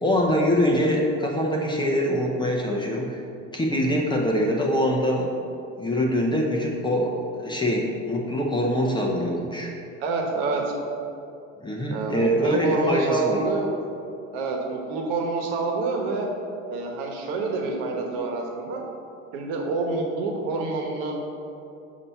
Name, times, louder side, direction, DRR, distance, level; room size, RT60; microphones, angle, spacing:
voice 1, 0.0-3.2 3.5-5.3 5.8-9.7 11.6-13.4, equal, 10° left, -1 dB, 0.6 m, -24 dB
voice 2, 10.0-10.7 11.9-13.7 14.3-16.3 16.7-18.8 19.3-21.3, right 3 dB, 70° right, 1 dB, 1.2 m, -27 dB
7.0 x 2.8 x 5.6 m, 2.7 s
supercardioid pair, 110°, 39 cm